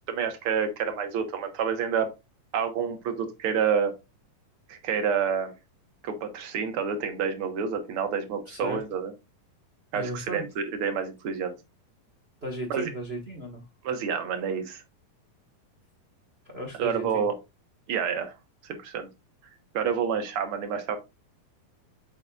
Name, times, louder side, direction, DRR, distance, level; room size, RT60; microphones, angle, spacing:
voice 1, 0.1-2.1 2.5-3.9 4.7-5.5 6.0-9.1 9.9-11.5 12.7-12.9 13.8-14.8 16.8-17.3 17.9-18.3 18.6-19.1 19.7-21.0, right 6 dB, 60° right, 1.5 m, -28 dB
voice 2, 8.5-8.8 9.9-10.4 12.4-13.6 16.4-17.2, right 1 dB, 40° right, 0.8 m, -35 dB
7.5 x 6.2 x 2.4 m
omnidirectional pair, 4.1 m